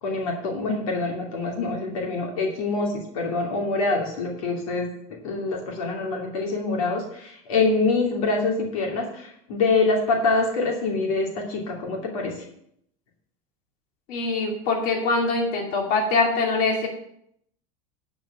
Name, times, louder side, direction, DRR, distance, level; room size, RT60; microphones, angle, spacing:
voice 1, 0.0-12.4, left 3 dB, 90° left, 0 dB, 2.8 m, -25 dB
voice 2, 14.1-16.9, left 3 dB, 55° left, 0 dB, 2.6 m, -23 dB
11.0 x 5.2 x 7.3 m, 0.71 s
supercardioid pair, 130°, 18 cm